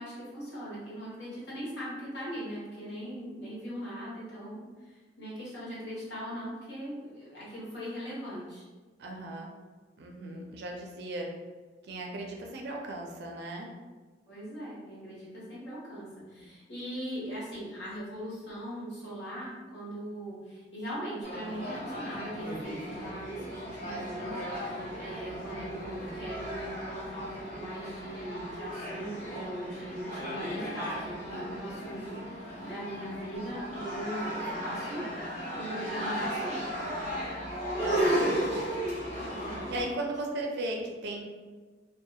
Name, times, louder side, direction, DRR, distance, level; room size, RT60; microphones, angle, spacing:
voice 1, 0.0-8.6 14.3-35.1 35.5-37.0 39.3-39.5, equal, 70° left, -7 dB, 1.2 m, -40 dB
voice 2, 9.0-9.5 10.0-11.3 11.8-13.7 24.8-24.9 37.8-38.6 39.7-41.2, right 1 dB, 65° right, 1 dB, 0.4 m, -37 dB
sound 1, 21.2-39.8, equal, 45° left, 1.4 m, -35 dB
2.7 x 2.3 x 2.3 m, 1.4 s
head